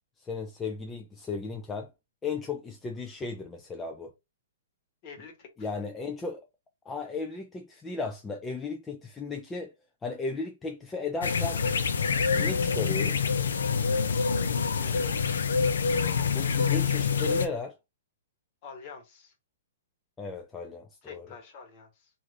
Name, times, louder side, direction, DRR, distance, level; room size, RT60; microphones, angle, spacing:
voice 1, 0.2-1.9 2.2-4.1 5.6-6.5 6.9-9.7 10.0-11.6 12.3-13.3 16.3-17.7 20.2-21.3, left 4 dB, 10° left, 0.4 m, -35 dB
voice 2, 5.0-5.7 14.8-15.2 18.6-19.3 21.0-22.1, left 5 dB, 35° left, 1.1 m, -47 dB
sound 1, 11.2-17.5, left 5 dB, 85° left, 0.4 m, -26 dB
2.6 x 2.5 x 3.2 m
hypercardioid pair, 150°, 0 cm